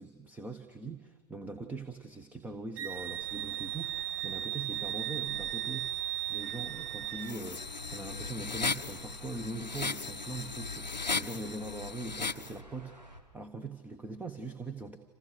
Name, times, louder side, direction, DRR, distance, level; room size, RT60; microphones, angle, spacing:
voice 1, 0.0-6.0 6.3-13.0 13.3-15.0, right 3 dB, 5° right, 9 dB, 1.2 m, -42 dB
Wind instrument woodwind instrument, 2.8-7.3, right 13 dB, 35° right, 0.9 m, -36 dB
sound 1, 2.9-13.2, equal, 90° right, 3.8 m, -51 dB
sound 2, 7.2-12.5, left 4 dB, 90° left, 0.8 m, -36 dB
28.5 x 27.5 x 6.7 m, 1.2 s
figure-of-eight pair, 110°, 21 cm